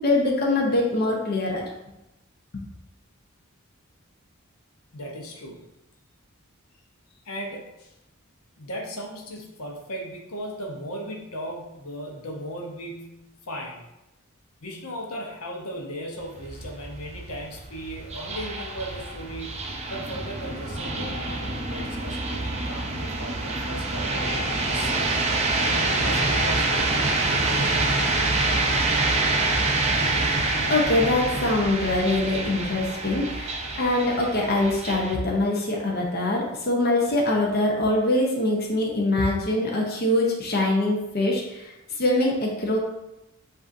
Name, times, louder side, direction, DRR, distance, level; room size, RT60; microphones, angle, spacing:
voice 1, 0.0-1.6 2.5-2.6 30.7-42.8, left 2 dB, 50° left, -1 dB, 0.7 m, -23 dB
voice 2, 4.9-5.7 7.2-7.9 8.6-13.8 14.6-19.6 19.9-21.4 21.7-27.1 27.5-27.9, equal, 85° left, 0 dB, 0.9 m, -37 dB
sound 1, 16.2-35.2, right 2 dB, 30° right, 0.5 m, -26 dB
7.4 x 2.6 x 2.6 m, 0.93 s
head